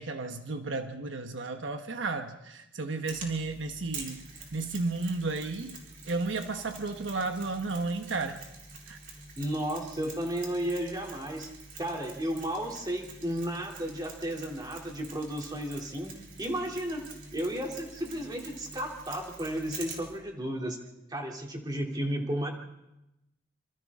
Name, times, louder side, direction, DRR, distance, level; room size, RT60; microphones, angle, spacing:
voice 1, 0.0-8.4 8.9-9.0, right 3 dB, 70° right, 6 dB, 1.1 m, -33 dB
Mechanisms, 3.1-20.2, right 3 dB, 45° right, 4.3 m, -47 dB
voice 2, 9.4-11.5 11.8-16.1 16.4-17.0 17.3-20.8 21.1-22.5, right 1 dB, 20° right, 1 dB, 3.0 m, -33 dB
27.0 x 26.5 x 3.7 m, 0.91 s
head